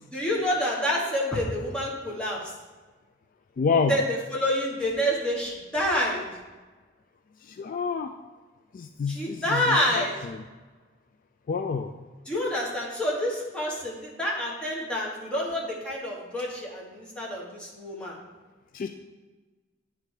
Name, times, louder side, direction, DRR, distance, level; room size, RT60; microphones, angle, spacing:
voice 1, 0.1-2.4 3.9-6.3 9.1-10.1 12.3-18.1, equal, 5° left, -5 dB, 1.5 m, -28 dB
voice 2, 3.6-4.0 7.4-8.1 8.7-10.4 11.5-11.9 18.7-18.9, left 5 dB, 45° left, 6 dB, 0.3 m, -28 dB
9.8 x 3.4 x 4.8 m, 1.3 s
head